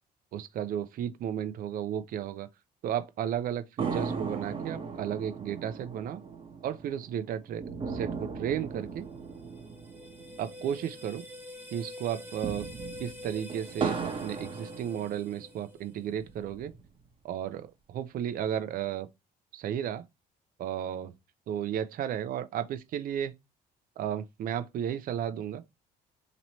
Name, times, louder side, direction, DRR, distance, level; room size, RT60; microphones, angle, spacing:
voice 1, 0.3-2.5 2.8-6.2 6.6-9.0 10.4-11.2 11.7-12.7 13.0-16.7 17.2-19.1 19.5-20.0 20.6-21.1 21.5-23.3 24.0-25.6, right 9 dB, 55° right, 0.5 m, -33 dB
sound 1, 3.8-11.4 11.6-11.7 12.2-15.5 16.1-17.1, right 5 dB, 30° right, 1.0 m, -38 dB
sound 2, 9.1-16.1, left 2 dB, 10° right, 1.3 m, -47 dB
3.0 x 3.0 x 4.1 m
cardioid pair, 110°, 17 cm